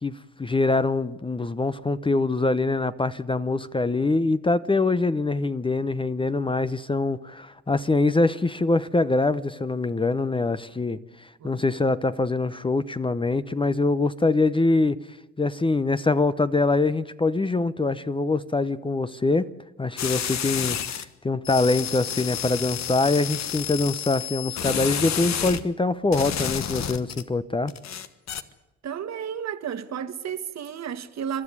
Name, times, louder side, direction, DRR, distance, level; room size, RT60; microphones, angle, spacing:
voice 1, 0.0-15.0 15.4-19.5 19.8-27.7, left 3 dB, 15° left, 0.8 m, -24 dB
sound 1, 20.0-21.0 21.4-25.6 26.1-27.2 27.7-28.4, left 9 dB, 60° left, 1.4 m, -30 dB
voice 2, 28.8-31.4, right 8 dB, 60° right, 1.6 m, -32 dB
28.5 x 12.5 x 9.7 m
cardioid pair, 90°, 30 cm